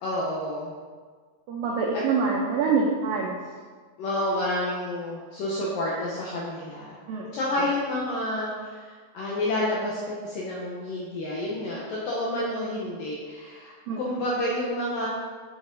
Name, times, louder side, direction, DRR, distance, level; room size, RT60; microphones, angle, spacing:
voice 1, 0.0-0.7 1.9-2.0 4.0-7.0 7.3-15.1, left 1 dB, 75° left, -5 dB, 2.1 m, -29 dB
voice 2, 1.5-3.4 7.1-7.3 13.9-14.0, right 4 dB, 85° right, -2 dB, 2.0 m, -25 dB
7.3 x 6.1 x 3.8 m, 1.5 s
omnidirectional pair, 5.0 m